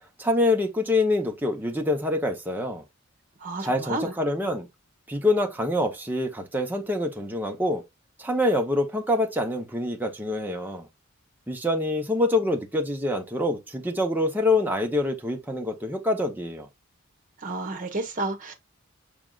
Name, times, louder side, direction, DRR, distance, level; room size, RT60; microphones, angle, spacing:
voice 1, 0.2-2.8 3.6-4.7 5.1-7.8 8.2-10.9 11.5-16.7, left 1 dB, 10° right, 0.8 m, -25 dB
voice 2, 3.4-4.1 17.4-18.5, right 2 dB, 40° right, 1.1 m, -31 dB
6.1 x 3.5 x 2.4 m
head